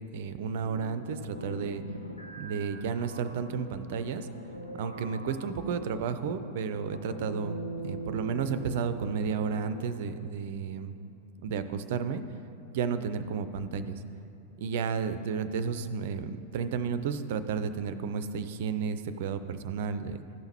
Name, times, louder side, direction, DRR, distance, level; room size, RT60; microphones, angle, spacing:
voice 1, 0.1-1.8 2.4-4.3 4.8-7.6 7.8-10.9 11.4-12.2 12.7-14.0 14.6-20.2, right 6 dB, 55° right, 11 dB, 0.5 m, -32 dB
sound 1, 0.6-10.1, right 1 dB, 85° left, 0.7 m, -42 dB
14.5 x 5.7 x 4.3 m, 2.9 s
figure-of-eight pair, 90°, 0 cm